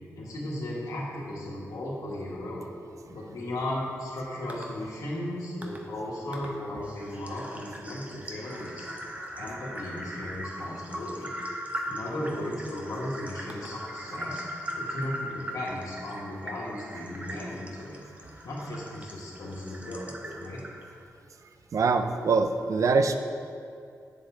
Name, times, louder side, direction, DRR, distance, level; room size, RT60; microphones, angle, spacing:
voice 1, 0.1-2.7 3.1-8.9 9.3-11.3 11.9-14.4 14.7-18.0 18.4-20.6, left 1 dB, 85° left, -5 dB, 1.6 m, -36 dB
sound 1, 4.5-4.6 5.6-5.8 6.3-6.5 6.8-21.0, equal, 25° right, 1.1 m, -40 dB
voice 2, 21.7-23.2, right 4 dB, 70° right, 8 dB, 0.5 m, -23 dB
8.8 x 6.9 x 3.8 m, 2.5 s
cardioid pair, 70°, 6 cm